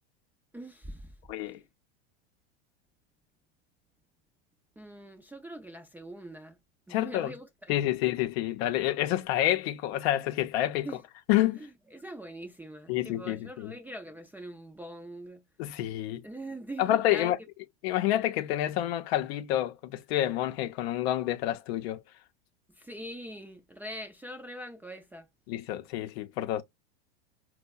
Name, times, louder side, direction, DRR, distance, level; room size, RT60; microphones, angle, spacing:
voice 1, 0.5-1.1 1.4-1.6 4.8-6.6 6.9-8.0 10.8-11.0 11.5-15.4 16.2-17.3 22.7-25.3, right 1 dB, 5° right, 0.4 m, -43 dB
voice 2, 1.3-1.6 6.9-7.3 7.7-10.9 11.3-11.6 12.9-13.7 15.6-16.2 16.8-17.4 17.8-22.0 25.5-26.6, left 13 dB, 65° left, 0.6 m, -28 dB
4.3 x 2.2 x 2.3 m
supercardioid pair, 120°, 33 cm